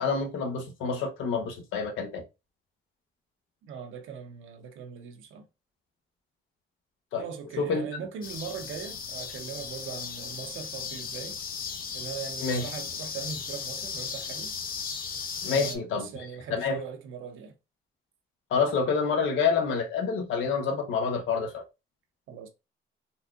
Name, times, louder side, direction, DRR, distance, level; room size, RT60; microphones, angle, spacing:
voice 1, 0.0-2.2 7.1-7.2 7.6-7.9 12.4-12.7 15.4-16.8 18.5-21.6, left 5 dB, 80° left, 0.9 m, -28 dB
voice 2, 3.6-5.5 7.2-11.4 11.9-14.5 15.4-17.5 22.3-22.5, right 7 dB, 85° right, 0.8 m, -40 dB
sound 1, 8.2-15.8, left 6 dB, 45° left, 0.6 m, -36 dB
4.1 x 2.3 x 2.5 m
cardioid pair, 90°, 20 cm